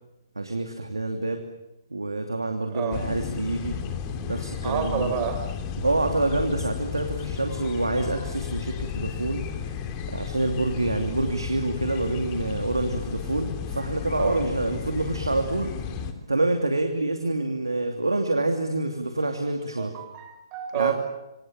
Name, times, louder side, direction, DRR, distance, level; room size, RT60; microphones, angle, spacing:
voice 1, 0.4-1.4 1.9-3.8 4.3-5.1 5.8-9.4 10.1-15.7 16.3-19.9 20.7-20.9, right 2 dB, 85° right, 5 dB, 2.8 m, -27 dB
voice 2, 2.7-3.0 4.6-5.5 14.2-14.4 19.8-20.9, right 9 dB, 25° right, 7 dB, 5.5 m, -29 dB
sound 1, 2.9-16.1, left 7 dB, 25° left, 3.0 m, -33 dB
27.5 x 25.0 x 7.5 m, 0.91 s
figure-of-eight pair, 130°, 2 cm